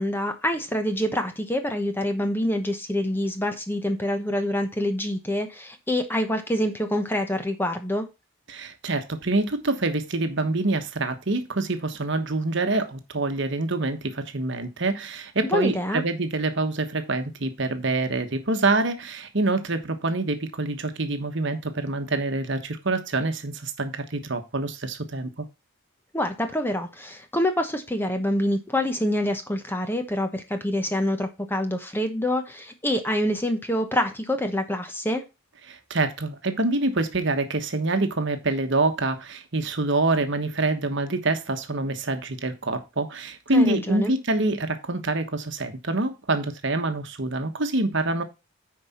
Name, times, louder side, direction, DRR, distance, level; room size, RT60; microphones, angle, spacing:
voice 1, 0.0-8.1 15.4-16.0 26.1-35.2 43.5-44.1, left 1 dB, 10° left, 0.9 m, -26 dB
voice 2, 8.5-25.4 35.7-48.2, right 2 dB, 60° right, 1.2 m, -26 dB
9.6 x 4.8 x 4.3 m
head